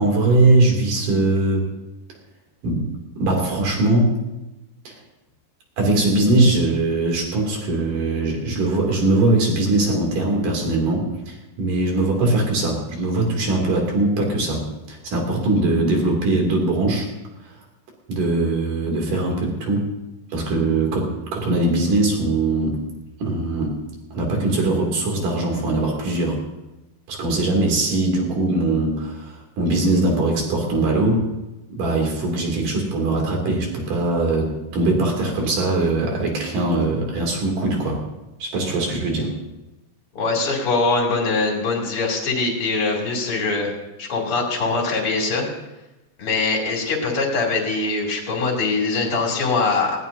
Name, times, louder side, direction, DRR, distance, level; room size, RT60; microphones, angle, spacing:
voice 1, 0.0-1.7 2.6-4.2 4.9-5.0 5.8-17.1 18.1-19.9 20.3-22.8 23.2-23.8 24.1-26.4 27.1-31.3 31.7-38.0 38.4-39.4, right 2 dB, 50° right, 0 dB, 4.1 m, -21 dB
voice 2, 40.1-43.7 44.0-45.4 46.2-50.0, left 3 dB, 35° left, 0 dB, 3.2 m, -22 dB
19.5 x 17.5 x 2.7 m, 0.97 s
omnidirectional pair, 5.0 m